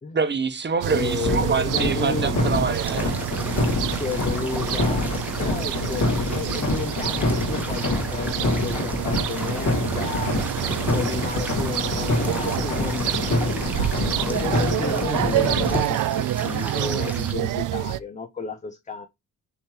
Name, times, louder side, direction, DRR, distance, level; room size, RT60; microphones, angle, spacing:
voice 1, 0.1-3.1, right 5 dB, 30° right, 1.1 m, -25 dB
sound 1, 0.8-18.0, right 13 dB, 70° right, 0.5 m, -28 dB
voice 2, 0.9-2.3 3.9-5.1 5.4-10.3 10.9-19.1, left 5 dB, 20° left, 0.6 m, -32 dB
sound 2, 1.2-15.8, left 2 dB, 60° left, 2.9 m, -26 dB
sound 3, 2.8-17.3, right 1 dB, 5° right, 1.2 m, -38 dB
7.0 x 3.0 x 4.4 m
cardioid pair, 115°, 33 cm